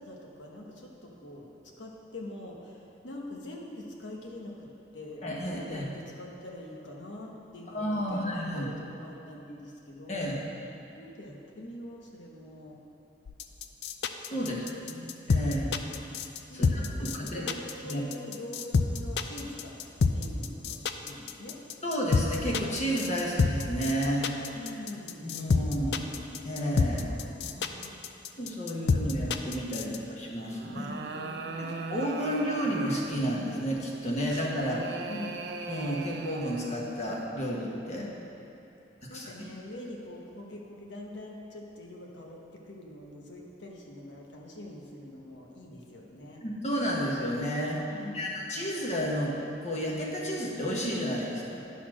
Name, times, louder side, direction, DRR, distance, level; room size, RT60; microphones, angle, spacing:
voice 1, 0.0-1.5 1.8-4.7 4.9-10.3 10.9-12.8 14.4-15.2 16.5-21.6 24.5-26.3 26.9-27.9 29.8-30.1 30.7-31.8 35.1-35.4 37.9-38.2 39.1-46.4 47.9-48.4, left 1 dB, 85° left, -1 dB, 1.2 m, -44 dB
voice 2, 5.2-5.9 7.7-8.7 10.1-10.4 14.3-14.6 14.9-15.8 16.5-17.4 17.8-18.0 21.8-24.3 25.2-26.0 26.4-27.1 28.4-30.9 31.6-34.9 35.7-38.0 39.1-39.3 46.4-47.9 48.1-49.4 49.6-51.6, equal, 40° left, -3 dB, 1.2 m, -31 dB
sound 1, 13.3-30.0, left 4 dB, 70° left, 0.4 m, -27 dB
sound 2, 30.4-33.3 34.3-36.9, right 4 dB, 65° right, 0.5 m, -39 dB
10.5 x 4.2 x 6.2 m, 2.7 s
head